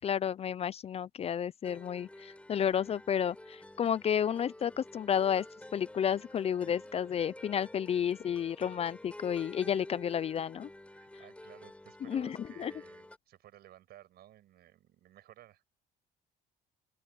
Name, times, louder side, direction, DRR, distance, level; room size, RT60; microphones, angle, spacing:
voice 1, 0.0-5.5 5.7-10.7 12.0-12.7, left 8 dB, 35° left, 0.4 m, -31 dB
sound 1, 1.6-13.2, left 1 dB, 5° left, 7.8 m, -50 dB
voice 2, 10.9-15.6, right 13 dB, 70° right, 7.8 m, -56 dB
open air
cardioid pair, 110°, 17 cm